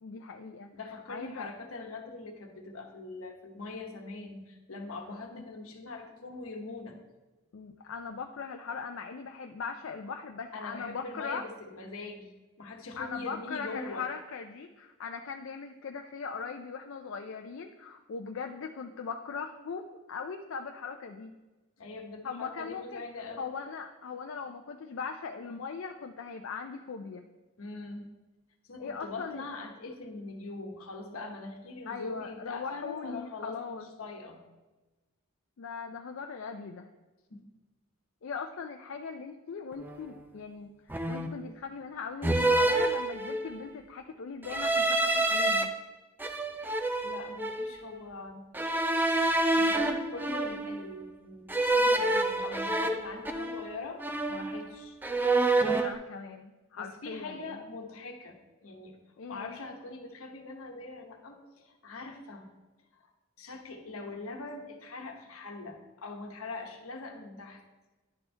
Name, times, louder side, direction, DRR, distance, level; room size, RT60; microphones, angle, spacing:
voice 1, 0.0-0.7 1.1-1.5 5.3-5.5 7.5-11.4 13.0-21.3 22.2-23.0 23.4-27.2 28.8-29.4 31.9-33.9 35.6-36.9 38.2-45.7 55.8-57.6 59.2-59.6, left 5 dB, 65° left, 4 dB, 0.4 m, -40 dB
voice 2, 0.7-7.0 10.5-12.3 12.6-14.0 21.8-23.5 27.6-28.1 28.6-34.4 37.3-37.4 47.0-48.5 49.6-54.0 54.3-55.0 56.8-58.4 58.6-59.0 59.3-62.5 62.9-63.1 63.4-67.6, left 3 dB, 80° left, 3 dB, 1.1 m, -42 dB
sound 1, 39.8-40.1 40.9-41.5 42.2-43.6 44.4-45.6 46.2-47.8 48.5-50.9 51.5-53.8 54.0-54.7 55.0-55.9, right 2 dB, 10° right, 0.4 m, -28 dB
11.0 x 4.4 x 3.3 m, 1.1 s
head